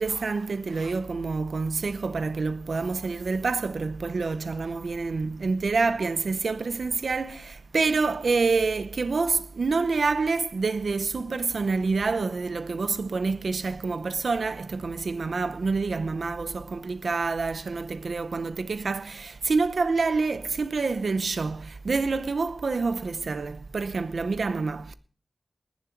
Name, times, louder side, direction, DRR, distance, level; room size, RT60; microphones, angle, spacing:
voice 1, 0.0-24.9, right 4 dB, 90° right, 0.7 m, -27 dB
20.0 x 7.3 x 4.5 m
wide cardioid pair, 55°, 0 cm